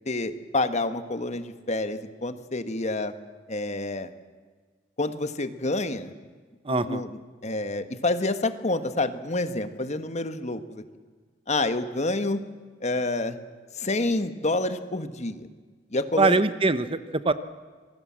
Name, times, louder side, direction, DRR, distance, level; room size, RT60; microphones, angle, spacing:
voice 1, 0.0-3.1 3.5-4.1 5.0-6.1 6.7-7.1 7.4-10.8 11.5-12.4 12.8-13.4 13.8-15.5 15.9-16.4, left 2 dB, 35° left, 10 dB, 1.4 m, -28 dB
voice 2, 6.6-7.1 16.2-17.3, right 3 dB, 30° right, 13 dB, 0.8 m, -23 dB
26.5 x 21.5 x 7.5 m, 1.5 s
head